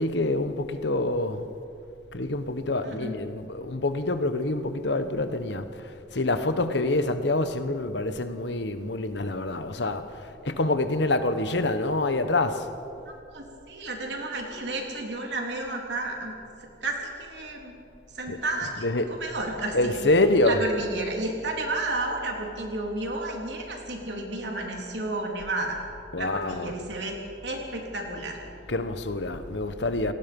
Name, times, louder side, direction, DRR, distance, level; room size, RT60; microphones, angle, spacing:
voice 1, 0.0-1.5 2.1-12.7 18.3-19.2 19.7-20.6 26.1-26.8 28.7-30.1, left 2 dB, 70° left, 1.2 m, -26 dB
voice 2, 2.8-3.1 13.0-16.3 16.6-17.7 18.1-20.1 20.4-25.8 26.2-27.1 27.4-28.4, right 2 dB, 70° right, 3.6 m, -32 dB
28.0 x 18.5 x 5.4 m
head